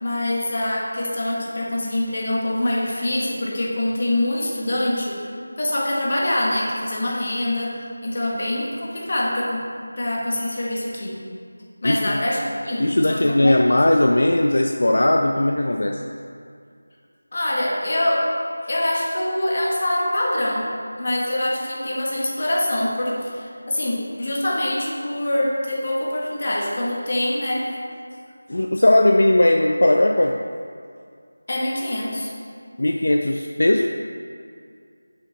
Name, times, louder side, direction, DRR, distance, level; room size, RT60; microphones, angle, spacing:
voice 1, 0.0-5.2 5.6-9.6 10.0-11.2 11.8-13.5 17.3-18.3 18.7-27.7 31.5-32.3, left 1 dB, 40° left, -3 dB, 1.3 m, -24 dB
voice 2, 11.8-12.2 12.8-16.0 28.5-30.4 32.8-33.9, left 1 dB, 65° left, 3 dB, 0.4 m, -18 dB
7.5 x 6.4 x 4.1 m, 2.3 s
figure-of-eight pair, 175°, 0 cm